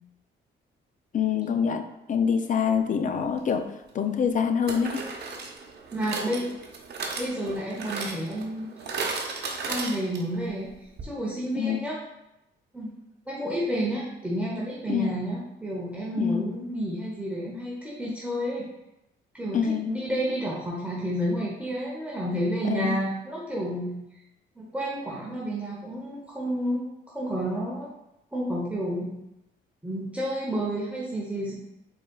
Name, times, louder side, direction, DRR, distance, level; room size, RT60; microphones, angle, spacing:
voice 1, 1.1-3.7 3.9-5.1 11.6-11.9 14.9-15.2 16.2-16.5 19.5-20.0 22.7-23.0, left 7 dB, 40° left, 8 dB, 0.5 m, -26 dB
sound 1, 3.4-3.5 4.7-10.4 10.7-10.8 11.0-11.1, right 4 dB, 55° right, 0.7 m, -35 dB
voice 2, 5.9-6.5 7.2-8.7 9.6-10.7 11.0-12.0 12.7-12.9 13.3-18.6 19.3-24.0 24.6-27.9 28.3-29.1 29.8-31.5, equal, 5° right, -5 dB, 0.9 m, -30 dB
4.8 x 3.8 x 2.3 m, 0.87 s
cardioid pair, 90°, 20 cm